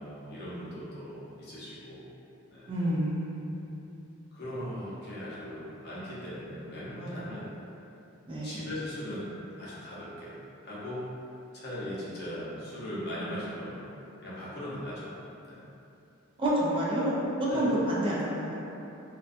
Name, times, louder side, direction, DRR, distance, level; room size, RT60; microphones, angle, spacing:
voice 1, 0.0-2.0 2.5-2.7 4.3-7.5 8.4-9.3 9.6-10.3 10.6-11.0 11.5-13.9 14.2-15.1 15.5-15.6 17.5-17.7, equal, 50° left, -9 dB, 0.7 m, -39 dB
voice 2, 2.7-4.1 8.3-8.6 16.4-18.6, right 1 dB, 25° right, -7 dB, 0.3 m, -29 dB
2.4 x 2.2 x 2.5 m, 2.8 s
head